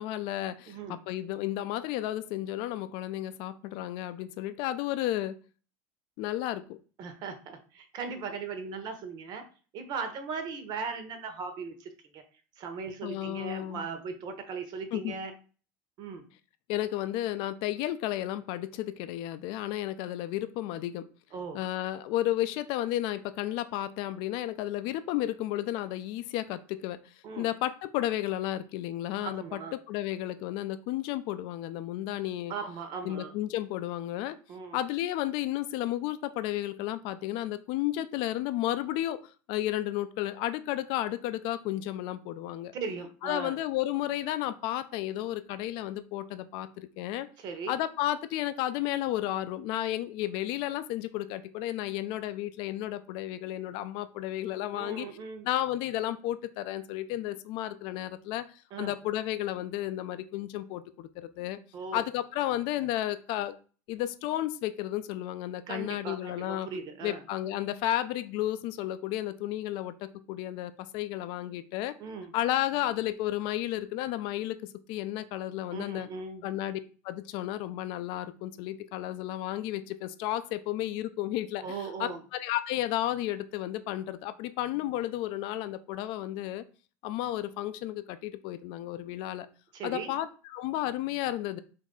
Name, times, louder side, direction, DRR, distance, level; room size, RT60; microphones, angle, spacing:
voice 1, 0.0-5.4 6.2-6.8 13.0-13.8 14.9-15.2 16.7-21.0 21.5-32.5 33.0-34.4 34.7-42.7 43.2-47.3 47.7-55.1 55.5-61.6 61.9-63.5 63.9-66.7 67.0-71.9 72.3-76.1 76.4-76.8 77.0-86.6 87.0-89.5 89.8-91.6, left 13 dB, 60° left, 12 dB, 0.4 m, -33 dB
voice 2, 0.7-1.0 7.0-9.5 9.7-12.2 12.6-15.3 16.0-16.2 21.3-21.6 27.2-27.5 29.2-29.7 32.5-33.3 34.5-34.8 42.7-43.6 47.4-47.8 54.7-55.5 58.7-58.9 61.7-62.0 65.7-67.2 72.0-72.3 75.7-76.4 81.6-82.2 89.7-90.2, right 5 dB, 50° right, 7 dB, 0.8 m, -38 dB
3.1 x 2.6 x 3.6 m, 0.38 s
supercardioid pair, 105°, 9 cm